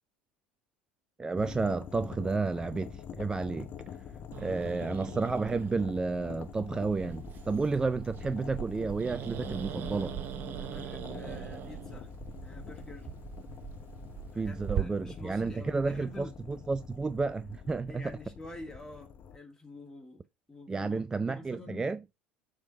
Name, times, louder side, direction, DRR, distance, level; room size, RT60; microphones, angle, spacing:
voice 1, 1.2-3.7 4.4-10.2 14.3-18.1 20.7-22.0, right 4 dB, 15° right, 0.3 m, -31 dB
sound 1, 1.4-19.4, left 8 dB, 35° left, 0.7 m, -46 dB
Growling, 4.3-14.8, right 10 dB, 40° right, 0.8 m, -41 dB
voice 2, 4.4-5.0 10.6-12.1 12.4-13.1 14.3-16.6 17.9-22.0, left 2 dB, 10° left, 1.8 m, -48 dB
7.1 x 3.6 x 5.6 m
figure-of-eight pair, 70°, 5 cm